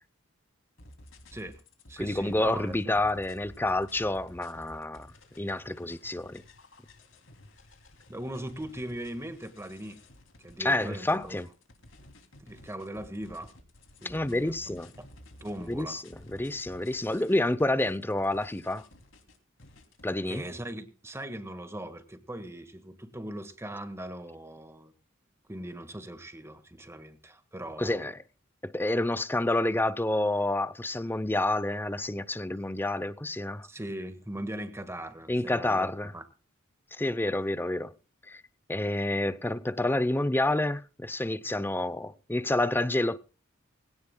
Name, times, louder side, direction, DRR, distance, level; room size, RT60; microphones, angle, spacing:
sound 1, 0.8-20.1, left 1 dB, 70° left, 2.9 m, -53 dB
voice 1, 1.3-1.6 1.9-3.1 8.1-10.0 10.4-11.4 12.4-13.5 14.0-15.1 15.4-16.0 20.3-24.9 25.5-28.1 33.6-36.3, right 1 dB, 15° right, 1.6 m, -40 dB
voice 2, 2.0-5.1 5.4-6.4 10.6-11.5 14.0-14.9 15.7-18.8 20.0-20.4 27.8-28.2 28.6-33.7 35.3-36.1 36.9-37.9 38.3-38.4 38.7-43.2, left 1 dB, 10° left, 0.6 m, -29 dB
20.5 x 17.0 x 2.2 m
head